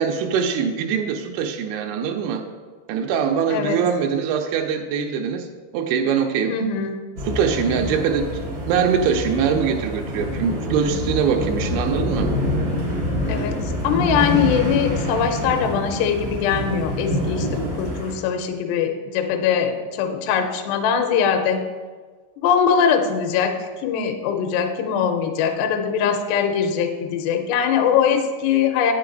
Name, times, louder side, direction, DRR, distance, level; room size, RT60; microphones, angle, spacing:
voice 1, 0.0-2.5 2.9-5.5 5.7-6.5 7.3-8.3 8.7-12.3, right 7 dB, 90° right, 3 dB, 3.0 m, -22 dB
voice 2, 3.5-3.8 6.5-7.0 13.3-21.6 22.4-23.5 23.8-28.9, left 7 dB, 80° left, 5 dB, 2.6 m, -22 dB
sound 1, 7.2-18.1, equal, 55° right, 0.6 m, -26 dB
8.9 x 6.8 x 3.8 m, 1.4 s
omnidirectional pair, 5.2 m